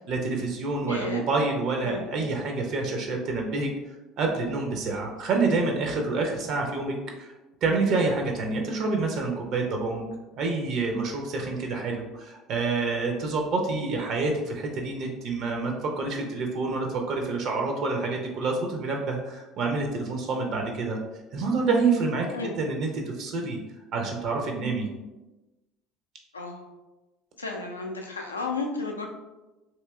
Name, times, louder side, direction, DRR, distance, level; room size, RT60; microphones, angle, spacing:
voice 1, 0.0-3.7 4.2-7.3 7.6-10.1 10.4-21.0 21.3-22.9 23.2-23.6 23.9-24.9, right 3 dB, 50° right, 2 dB, 0.4 m, -27 dB
voice 2, 0.9-1.3 1.8-2.1 22.3-22.5 26.3-26.7 27.4-29.1, left 3 dB, 85° left, 2 dB, 0.3 m, -33 dB
3.0 x 2.7 x 2.2 m, 1.1 s
figure-of-eight pair, 65°, 0 cm